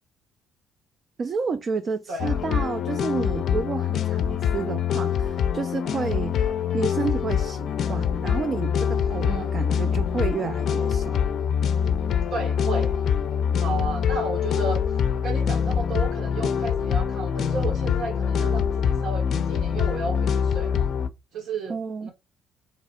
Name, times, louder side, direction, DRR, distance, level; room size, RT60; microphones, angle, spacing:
voice 1, 1.2-6.4 6.7-11.2 21.7-22.1, right 5 dB, 35° right, 0.3 m, -30 dB
voice 2, 2.1-2.4 9.2-9.6 12.3-13.0 13.6-20.9 21.3-22.1, right 3 dB, 65° right, 1.0 m, -33 dB
sound 1, 2.2-21.1, left 7 dB, 55° left, 0.4 m, -24 dB
3.3 x 2.9 x 4.3 m
cardioid pair, 125°, 0 cm